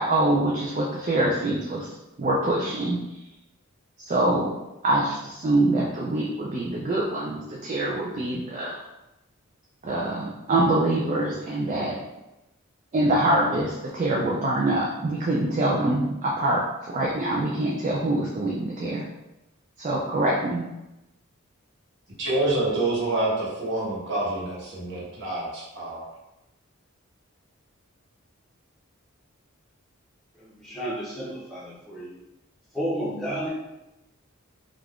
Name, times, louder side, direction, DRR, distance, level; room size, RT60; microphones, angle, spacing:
voice 1, 0.0-1.9 2.2-3.0 4.0-4.5 4.8-8.8 9.8-12.0 12.9-19.1 19.8-20.7, right 1 dB, 35° right, -4 dB, 0.3 m, -24 dB
voice 2, 22.2-26.0, right 2 dB, 55° right, -6 dB, 0.9 m, -27 dB
voice 3, 30.4-32.1 32.7-33.5, equal, ahead, -9 dB, 0.7 m, -32 dB
2.4 x 2.2 x 3.4 m, 0.95 s
head